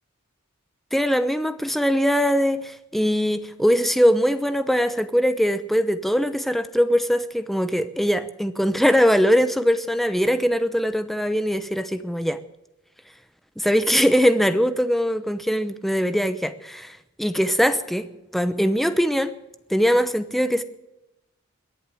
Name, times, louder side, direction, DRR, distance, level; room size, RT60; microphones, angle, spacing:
voice 1, 0.9-12.4 13.6-18.1 18.3-19.3 19.7-20.6, equal, ahead, 11 dB, 0.8 m, -21 dB
21.5 x 7.9 x 7.7 m, 0.92 s
head